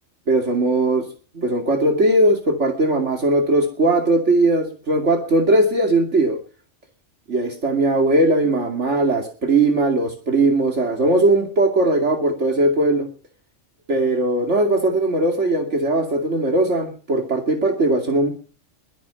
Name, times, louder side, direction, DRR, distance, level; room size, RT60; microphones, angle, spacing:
voice 1, 0.3-1.1 1.3-6.4 7.3-13.1 13.9-18.3, right 2 dB, 70° right, 3 dB, 2.9 m, -19 dB
22.5 x 9.3 x 5.8 m, 0.39 s
omnidirectional pair, 1.2 m